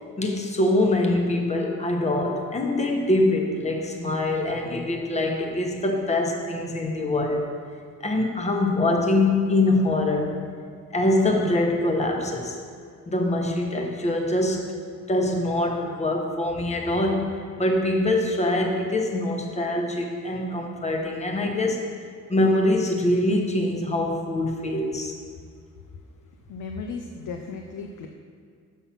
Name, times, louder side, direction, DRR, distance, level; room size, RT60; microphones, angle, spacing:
voice 1, 0.2-7.4 8.0-10.4 10.9-12.6 13.1-14.7 15.1-21.8 22.3-25.1, left 1 dB, 20° left, 2 dB, 1.0 m, -24 dB
voice 2, 26.5-28.1, left 4 dB, 85° left, 3 dB, 0.7 m, -35 dB
7.4 x 5.7 x 5.8 m, 2.2 s
cardioid pair, 140°, 31 cm